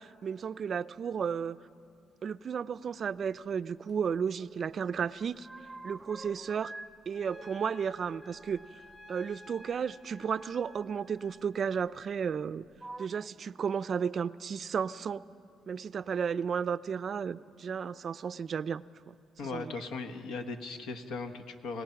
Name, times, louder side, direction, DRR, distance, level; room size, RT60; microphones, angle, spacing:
voice 1, 0.0-1.6 2.2-5.5 5.8-6.7 7.1-8.6 9.1-12.6 13.0-15.2 15.7-19.2 19.5-19.7, right 7 dB, 50° right, 16 dB, 0.4 m, -33 dB
sound 1, 3.9-4.8 5.1-6.9 7.2-9.7 10.8-10.9 11.8-12.4 12.7-13.1, right 2 dB, 10° right, 0.6 m, -48 dB
Trumpet, 7.1-11.5, equal, 50° left, 5.8 m, -54 dB
voice 2, 19.4-21.8, left 4 dB, 90° left, 7 dB, 1.3 m, -38 dB
28.5 x 18.0 x 5.8 m, 2.6 s
cardioid pair, 90°, 0 cm